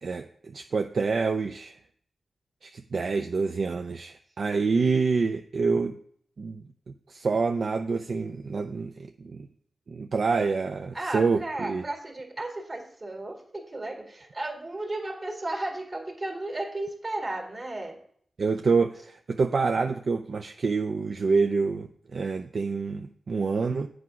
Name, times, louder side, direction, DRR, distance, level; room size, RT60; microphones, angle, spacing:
voice 1, 0.0-1.8 2.6-6.0 6.4-9.5 9.9-11.8 18.4-23.9, right 4 dB, 65° right, 6 dB, 0.4 m, -27 dB
voice 2, 10.9-18.0, right 2 dB, 40° right, 2 dB, 2.0 m, -34 dB
8.0 x 4.7 x 6.2 m, 0.62 s
cardioid pair, 60°, 0 cm